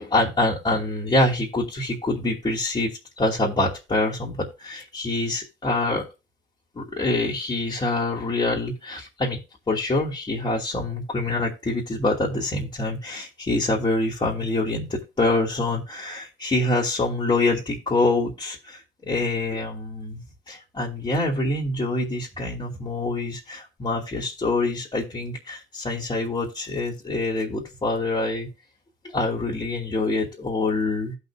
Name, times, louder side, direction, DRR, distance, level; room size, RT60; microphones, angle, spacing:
voice 1, 0.0-6.1 6.7-9.4 9.7-28.5 29.1-31.1, left 2 dB, 25° left, -6 dB, 2.9 m, -25 dB
16.0 x 5.4 x 2.4 m, 0.28 s
cardioid pair, 90°, 20 cm